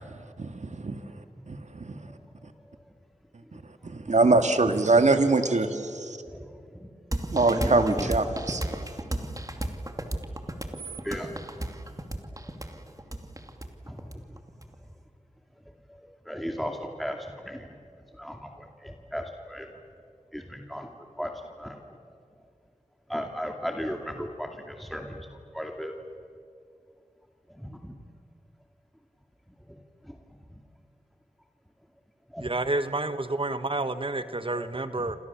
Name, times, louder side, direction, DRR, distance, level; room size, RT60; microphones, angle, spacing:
voice 1, 0.4-1.0 1.5-2.0 3.5-6.2 7.3-8.6, right 3 dB, 70° right, 7 dB, 2.1 m, -24 dB
voice 2, 6.3-6.9 11.0-11.7 13.8-14.1 14.8-14.9 15.9-17.7 18.2-19.7 20.3-20.9 21.2-21.8 23.1-25.3 25.5-26.0 27.5-28.0 29.7-29.8 30.0-30.2 30.5-30.6 32.3-32.5 34.6-34.7 35.0-35.1, equal, ahead, 2 dB, 2.5 m, -36 dB
sound 1, 7.1-14.7, right 1 dB, 25° right, 2.6 m, -33 dB
voice 3, 32.4-35.2, right 2 dB, 45° right, 11 dB, 1.3 m, -29 dB
28.0 x 27.5 x 7.2 m, 2.3 s
cardioid pair, 45°, 12 cm